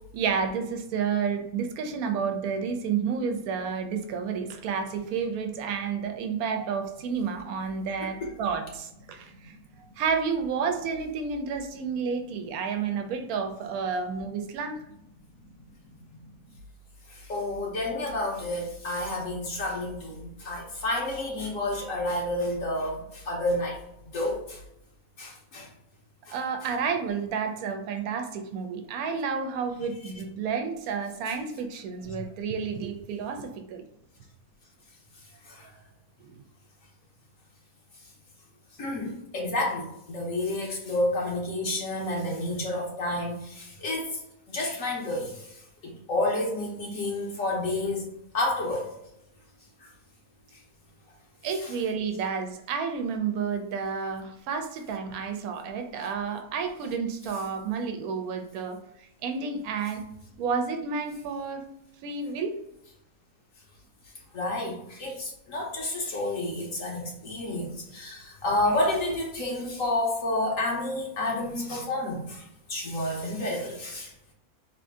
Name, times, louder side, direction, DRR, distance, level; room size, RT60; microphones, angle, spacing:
voice 1, 0.1-14.8 26.3-33.8 51.4-60.0 60.4-61.7 62.0-62.6, right 6 dB, 85° right, 6 dB, 1.1 m, -30 dB
voice 2, 17.3-23.0 23.3-23.7 24.1-24.6 25.2-25.7 26.3-26.4 32.0-32.1 38.8-44.1 44.5-45.3 45.8-48.0 48.3-48.9 64.3-72.4 72.7-74.1, left 1 dB, 65° left, -2 dB, 1.2 m, -30 dB
3.2 x 2.6 x 3.5 m, 0.80 s
omnidirectional pair, 1.5 m